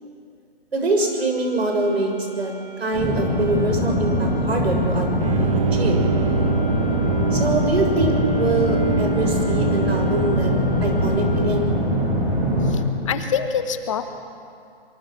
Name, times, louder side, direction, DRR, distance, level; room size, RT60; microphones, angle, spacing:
voice 1, 0.7-2.5 2.8-6.0 7.3-10.5 10.8-11.7, right 2 dB, 75° right, 3 dB, 6.6 m, -24 dB
sound 1, 0.9-11.8, left 2 dB, 5° left, 4.1 m, -42 dB
sound 2, 2.9-12.7, equal, 10° right, 6.3 m, -22 dB
Bowed string instrument, 5.2-12.5, right 5 dB, 30° right, 0.7 m, -27 dB
voice 2, 12.6-14.0, left 7 dB, 30° left, 8 dB, 1.2 m, -26 dB
24.5 x 24.0 x 6.3 m, 2.4 s
hypercardioid pair, 155°, 32 cm